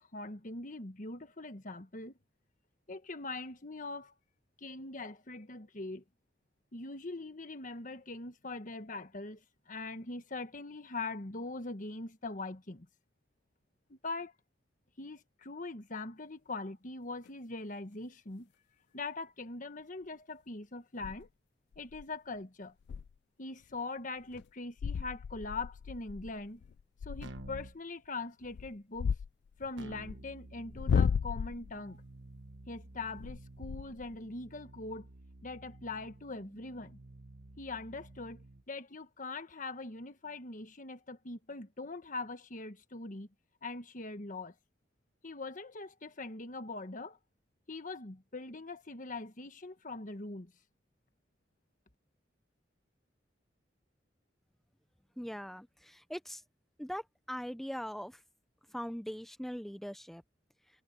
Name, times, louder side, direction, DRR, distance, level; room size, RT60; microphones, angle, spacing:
voice 1, 0.0-2.1 2.9-4.1 4.6-6.0 6.7-12.9 13.9-14.3 15.0-18.5 18.9-21.3 21.8-22.7 23.4-26.6 27.0-29.2 29.6-32.0 32.7-35.1 35.4-37.0 37.6-43.3 43.6-44.5 45.2-47.2 47.7-50.5, left 3 dB, 45° left, 1.4 m, -42 dB
sound 1, 17.3-17.4 21.0-21.3 21.7-22.0 22.4-22.5 22.8-23.1 23.6-23.8 24.3-24.4 24.8-27.7 28.4-30.2 30.7-31.8 33.2-34.2, left 6 dB, 65° left, 0.3 m, -35 dB
Keyboard (musical), 27.2-27.8 29.8-38.7, right 2 dB, 80° right, 1.3 m, -52 dB
voice 2, 55.2-56.4 56.8-58.2 58.7-60.2, equal, ahead, 0.6 m, -41 dB
head